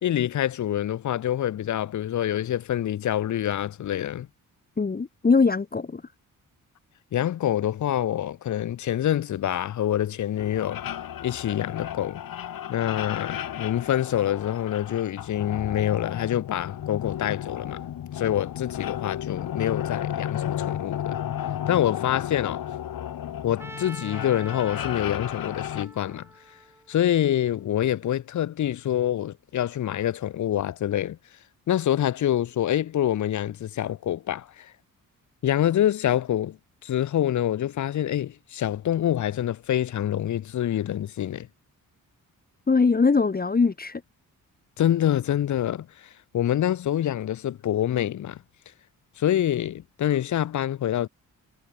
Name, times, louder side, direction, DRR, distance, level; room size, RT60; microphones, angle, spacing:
voice 1, 0.0-4.3 7.1-10.8 11.2-12.2 12.7-17.9 18.1-21.2 21.7-22.6 23.4-26.3 26.9-31.2 31.7-34.7 35.4-36.6 36.8-41.5 44.8-48.4 49.2-51.1, left 11 dB, 60° left, 0.8 m, -26 dB
voice 2, 4.8-6.0 42.7-44.0, left 4 dB, 25° left, 1.4 m, -21 dB
sound 1, 10.4-25.9, left 10 dB, 80° left, 3.4 m, -33 dB
Trumpet, 23.6-27.6, right 1 dB, 5° right, 3.2 m, -44 dB
cardioid pair, 95°, 34 cm